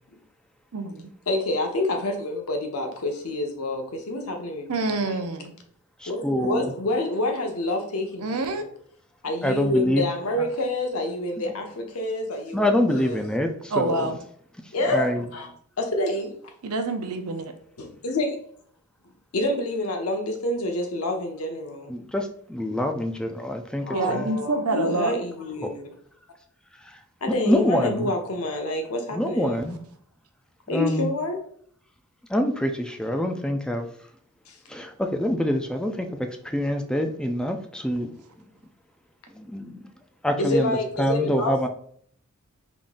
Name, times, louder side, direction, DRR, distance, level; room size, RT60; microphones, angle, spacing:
voice 1, 0.7-1.1 4.7-5.5 8.2-8.6 13.7-14.2 16.6-17.5 23.9-25.1, right 3 dB, 85° right, 7 dB, 0.6 m, -27 dB
voice 2, 1.3-5.2 6.1-8.6 9.2-13.2 14.7-15.5 15.8-16.3 17.8-18.4 19.3-21.9 23.8-25.8 27.2-29.6 30.7-31.4 34.5-34.6 40.4-41.7, left 2 dB, 75° left, 4 dB, 0.8 m, -28 dB
voice 3, 6.0-6.7 9.4-10.0 12.5-14.1 14.9-15.3 21.9-24.3 25.6-25.7 27.3-28.1 29.1-29.8 30.7-31.1 32.3-33.9 34.7-36.1 36.4-38.1 39.3-39.8 40.2-40.7 41.0-41.7, equal, 5° left, 5 dB, 0.3 m, -25 dB
3.8 x 3.6 x 2.5 m, 0.62 s
head